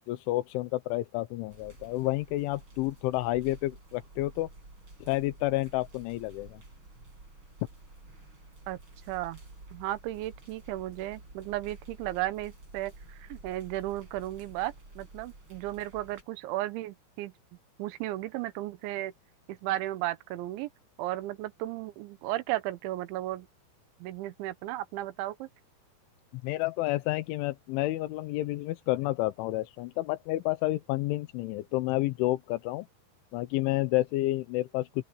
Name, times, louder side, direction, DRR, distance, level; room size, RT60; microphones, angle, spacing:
voice 1, 0.1-4.5 5.0-6.6 26.4-32.9 33.3-35.0, left 17 dB, 90° left, 3.4 m, -30 dB
sound 1, 1.5-16.2, right 2 dB, 25° right, 8.4 m, -51 dB
voice 2, 9.1-9.4 9.7-17.3 17.8-19.1 19.5-20.7 21.0-23.5 24.0-25.5, right 15 dB, 80° right, 3.3 m, -34 dB
open air
omnidirectional pair, 5.4 m